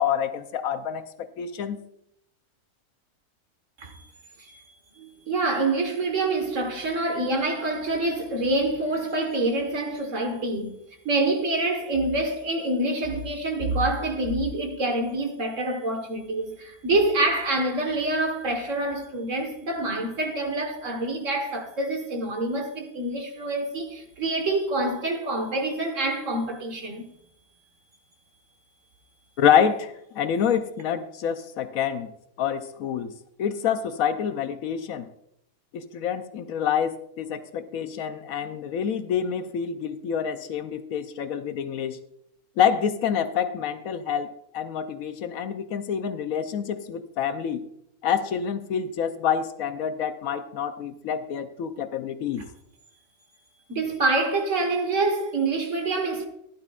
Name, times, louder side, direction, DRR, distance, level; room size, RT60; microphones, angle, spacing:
voice 1, 0.0-1.8 29.4-32.1 32.4-33.1 33.4-35.1 35.7-42.0 42.6-47.6 48.0-52.5, left 8 dB, 70° left, 1.0 m, -27 dB
voice 2, 5.0-10.8 11.0-27.0 53.7-56.3, right 2 dB, 55° right, 1.8 m, -26 dB
15.5 x 11.5 x 2.4 m
omnidirectional pair, 1.6 m